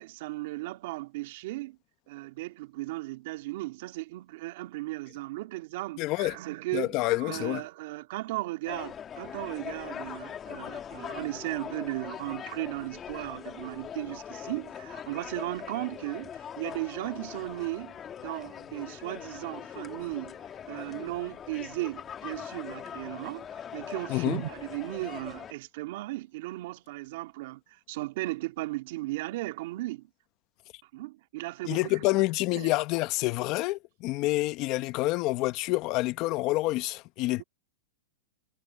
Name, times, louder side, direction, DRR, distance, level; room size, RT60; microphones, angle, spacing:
voice 1, 0.0-1.8 2.1-20.4 20.7-30.1 30.8-32.1 32.5-32.7 37.4-37.5, right 19 dB, 60° right, 2.6 m, -36 dB
voice 2, 6.0-6.4 6.7-7.6 24.1-24.4 31.7-37.4, left 20 dB, 40° left, 1.1 m, -28 dB
sound 1, 8.7-25.5, left 8 dB, 20° left, 1.9 m, -42 dB
hypercardioid pair, 140°, 0 cm